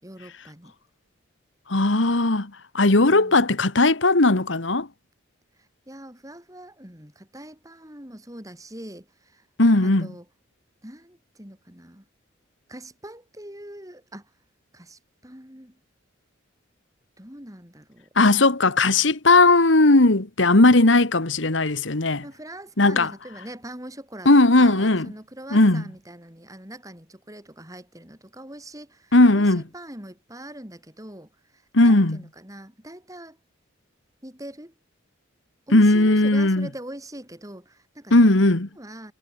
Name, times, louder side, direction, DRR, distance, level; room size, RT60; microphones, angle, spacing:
voice 1, 0.0-0.7 2.9-3.5 5.9-9.4 9.8-10.2 10.8-12.0 12.7-14.2 14.7-15.7 17.2-18.1 22.2-24.3 24.5-31.3 31.8-33.4 34.2-34.7 35.7-39.1, right 1 dB, 15° right, 5.1 m, -42 dB
voice 2, 1.7-4.9 9.6-10.1 18.1-22.2 22.8-23.1 24.2-25.1 25.5-25.8 29.1-29.6 31.7-32.2 35.7-36.7 38.1-38.7, left 2 dB, 75° left, 1.7 m, -17 dB
head